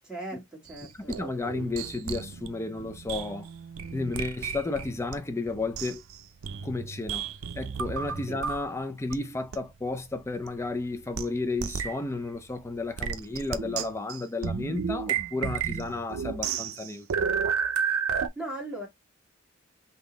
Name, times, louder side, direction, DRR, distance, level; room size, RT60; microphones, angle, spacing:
voice 1, 0.0-1.2 8.3-8.4 18.4-18.9, right 2 dB, 5° right, 1.9 m, -38 dB
sound 1, 0.7-5.2 5.5-8.7 9.1-9.2 9.5-9.6 10.5-10.6 11.1-11.3 11.6-12.0 13.0-18.3, right 7 dB, 85° right, 0.5 m, -32 dB
voice 2, 1.1-3.5 3.9-6.0 6.6-7.3 7.6-17.1, left 3 dB, 15° left, 0.4 m, -32 dB
3.8 x 2.8 x 3.9 m
head